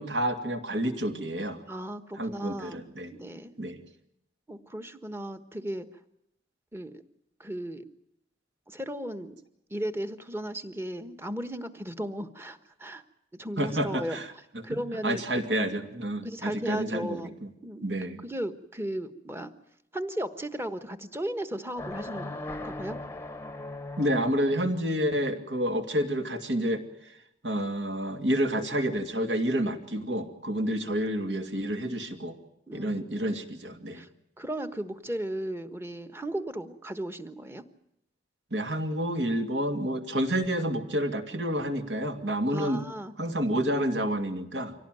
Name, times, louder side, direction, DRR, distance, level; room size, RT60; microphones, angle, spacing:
voice 1, 0.0-1.6 2.1-3.1 3.6-3.8 13.6-14.3 14.7-17.5 17.8-18.2 24.0-27.1 27.4-32.4 32.7-34.0 38.5-42.8 43.2-44.7, equal, 65° right, 6 dB, 2.5 m, -29 dB
voice 2, 1.7-2.8 3.1-3.5 4.5-5.9 6.7-7.0 7.4-7.8 8.7-9.3 9.7-13.0 13.4-14.2 14.6-15.2 16.2-17.3 17.6-17.9 18.2-19.5 19.9-23.0 32.7-33.2 33.9-34.1 34.4-37.6 42.5-43.1, right 1 dB, 15° right, 10 dB, 1.3 m, -35 dB
sound 1, 21.7-24.6, left 2 dB, 15° left, 1.0 m, -38 dB
25.0 x 17.5 x 9.2 m, 0.81 s
head